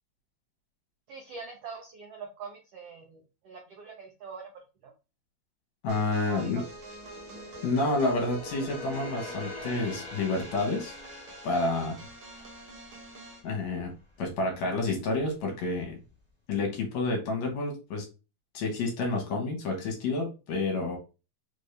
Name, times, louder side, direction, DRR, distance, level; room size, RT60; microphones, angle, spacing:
voice 1, 1.1-4.5 4.8-4.9 6.3-6.7 7.0-7.2, right 5 dB, 85° right, 1 dB, 1.3 m, -44 dB
voice 2, 5.8-6.6 7.6-11.0 11.4-12.0 13.4-13.9 14.2-16.0 16.5-18.0 18.5-21.0, left 2 dB, 65° left, 2 dB, 2.0 m, -29 dB
sound 1, 5.9-13.5, right 1 dB, 55° right, 1.5 m, -47 dB
sound 2, 6.6-13.9 14.3-14.5 15.1-15.8 16.1-16.2, left 1 dB, 20° right, 0.8 m, -44 dB
5.0 x 2.6 x 3.2 m, 0.30 s
omnidirectional pair, 3.7 m